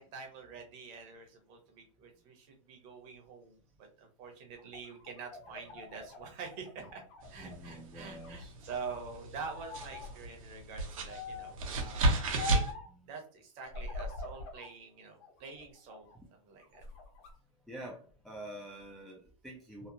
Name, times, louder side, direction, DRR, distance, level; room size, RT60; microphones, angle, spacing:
voice 1, 0.0-7.0 7.3-12.6 13.0-16.8, right 5 dB, 40° right, 3 dB, 0.8 m, -46 dB
sound 1, 4.6-7.8 8.2-9.0 9.4-10.1 11.1-11.6 12.4-12.9 13.7-14.7 15.2-16.2 16.6-17.3, left 3 dB, 45° left, 0.8 m, -44 dB
sound 2, 7.2-12.7, right 2 dB, 75° right, 0.8 m, -34 dB
voice 2, 7.4-8.5 16.1-16.2 17.7-19.9, right 1 dB, ahead, -4 dB, 0.3 m, -47 dB
2.9 x 2.0 x 2.5 m, 0.42 s
supercardioid pair, 140°, 18 cm